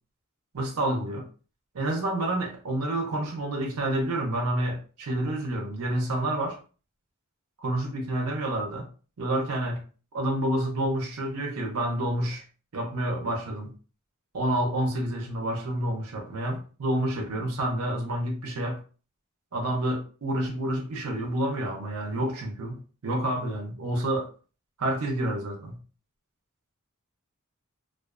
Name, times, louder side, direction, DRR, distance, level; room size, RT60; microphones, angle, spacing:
voice 1, 0.5-1.3 1.7-6.6 7.6-8.9 9.2-9.8 10.1-12.4 12.7-13.7 14.3-18.8 19.5-24.3 24.8-25.8, right 1 dB, 75° right, 0.6 m, -29 dB
2.3 x 2.3 x 2.3 m
head